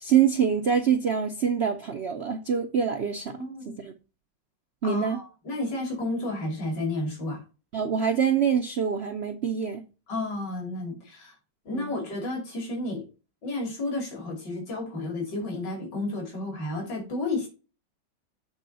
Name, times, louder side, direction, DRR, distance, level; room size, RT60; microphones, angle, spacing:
voice 1, 0.0-3.4 3.7-3.9 4.8-5.2 7.7-9.8 11.7-11.9, right 7 dB, 65° right, 0.6 m, -25 dB
voice 2, 3.4-3.8 4.8-7.4 10.1-11.3 11.6-13.0 13.4-17.5, left 2 dB, 70° left, 3.4 m, -32 dB
7.8 x 3.8 x 5.4 m
omnidirectional pair, 2.0 m